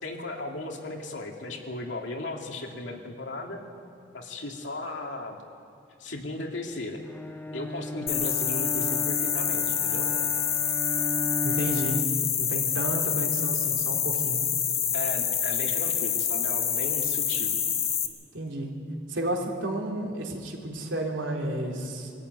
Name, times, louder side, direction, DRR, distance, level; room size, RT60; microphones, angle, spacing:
voice 1, 0.0-3.6 4.1-5.4 6.0-7.0 7.5-10.1 14.9-17.5, left 2 dB, 75° left, 1 dB, 2.5 m, -36 dB
Bowed string instrument, 7.1-12.3, left 2 dB, 10° left, 0.5 m, -35 dB
sound 1, 8.1-18.1, left 8 dB, 35° left, 1.3 m, -27 dB
voice 2, 11.4-12.1 12.4-14.5 18.3-18.7 19.1-22.1, right 1 dB, 85° right, 0 dB, 3.2 m, -31 dB
23.0 x 14.0 x 9.5 m, 2.5 s
head